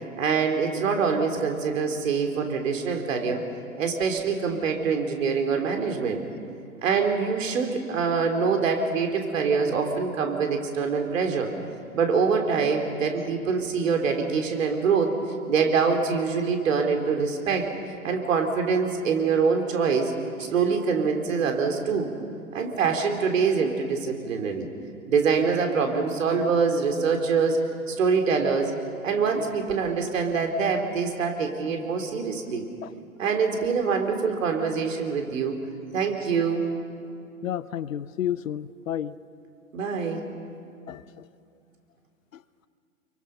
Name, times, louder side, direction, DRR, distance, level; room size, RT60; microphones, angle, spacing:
voice 1, 0.2-3.4 3.8-6.2 6.8-11.5 11.9-15.1 15.5-17.7 18.0-20.1 20.4-22.1 22.5-24.7 25.1-27.6 27.9-28.7 29.0-32.6 33.2-35.6 35.9-36.7 39.7-40.2, right 5 dB, 65° right, 5 dB, 3.3 m, -24 dB
voice 2, 37.4-39.2 40.9-41.3 42.3-42.4, left 10 dB, 70° left, 17 dB, 0.8 m, -31 dB
30.0 x 23.0 x 5.7 m, 2.5 s
figure-of-eight pair, 110°, 42 cm